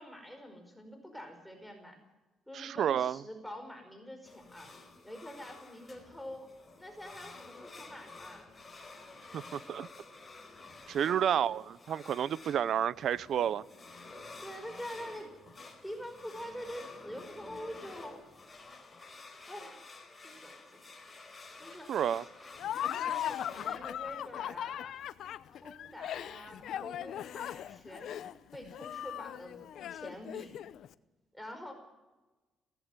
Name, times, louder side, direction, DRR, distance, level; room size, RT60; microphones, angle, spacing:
voice 1, 0.0-2.0 2.5-4.7 5.0-6.5 6.8-8.5 11.0-11.5 14.4-15.3 15.8-18.2 19.5-19.8 20.2-20.8 21.6-21.9 22.8-25.0 25.5-30.6 31.3-31.7, equal, 5° left, 5.0 m, -46 dB
voice 2, 2.5-3.2 9.3-9.9 10.9-13.6 21.9-22.2, right 9 dB, 65° right, 0.7 m, -30 dB
sound 1, 4.2-23.7, left 3 dB, 25° left, 4.4 m, -51 dB
Laughter, 22.6-30.9, left 10 dB, 75° left, 0.8 m, -38 dB
17.5 x 15.5 x 9.6 m
cardioid pair, 90°, 0 cm